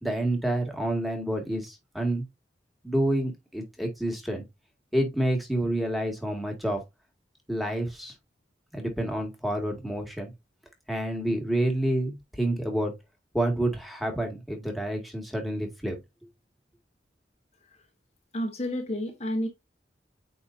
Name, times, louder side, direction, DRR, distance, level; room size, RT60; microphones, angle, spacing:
voice 1, 0.0-2.3 2.8-4.4 4.9-6.8 7.5-8.1 8.7-10.3 10.9-12.9 13.3-16.0, right 1 dB, ahead, 2.1 m, -28 dB
voice 2, 18.3-19.5, left 1 dB, 35° left, 1.3 m, -30 dB
8.7 x 4.4 x 2.7 m
head